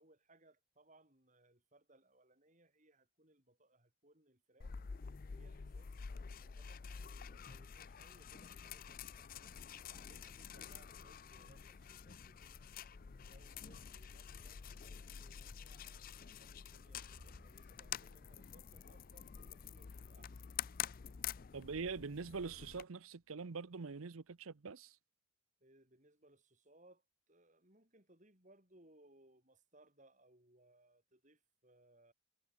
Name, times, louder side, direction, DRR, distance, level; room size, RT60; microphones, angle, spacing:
voice 1, 0.0-4.8 5.3-6.1 6.4-9.5 9.9-12.6 13.2-20.4 25.6-27.0 27.3-32.1, right 1 dB, 35° right, 5.9 m, -68 dB
sound 1, 4.6-22.8, left 8 dB, 40° left, 0.4 m, -48 dB
sound 2, 10.2-21.7 22.4-24.8, right 1 dB, 55° right, 3.6 m, -73 dB
voice 2, 21.5-25.0, right 4 dB, 75° right, 0.7 m, -44 dB
head